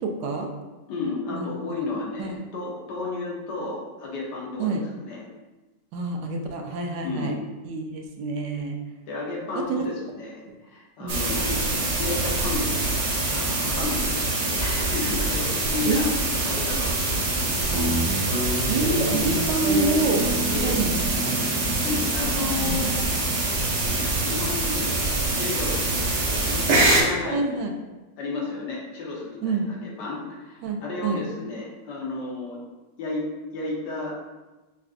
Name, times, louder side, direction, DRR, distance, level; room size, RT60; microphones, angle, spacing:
voice 1, 0.0-0.5 1.3-1.5 2.2-2.4 4.6-4.8 5.9-7.3 7.6-8.8 9.5-9.9 11.0-11.1 15.9-16.1 18.7-20.3 20.6-21.5 22.6-23.2 27.3-27.7 29.4-29.7 30.6-31.2, right 2 dB, 80° right, 2 dB, 1.2 m, -27 dB
voice 2, 0.9-4.7 4.9-5.3 7.0-7.4 9.1-12.7 13.3-16.0 16.4-18.0 18.4-18.7 20.5-20.8 21.8-23.1 23.9-27.4 28.2-32.6 33.0-34.2, left 3 dB, 75° left, -3 dB, 1.4 m, -33 dB
sound 1, 11.1-27.0, right 2 dB, 50° right, 0.8 m, -25 dB
Guitar, 17.7-24.4, right 1 dB, ahead, 0.8 m, -31 dB
5.7 x 2.4 x 2.4 m, 1.1 s
omnidirectional pair, 1.9 m